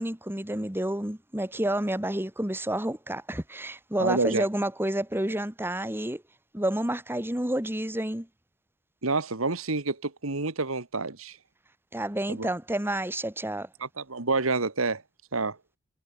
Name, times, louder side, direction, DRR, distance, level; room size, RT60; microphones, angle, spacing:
voice 1, 0.0-6.2 6.5-8.3 11.9-13.7, right 1 dB, 10° right, 1.9 m, -29 dB
voice 2, 4.0-4.5 9.0-11.4 12.3-12.5 13.8-15.0 15.3-15.6, right 3 dB, 70° right, 1.8 m, -28 dB
head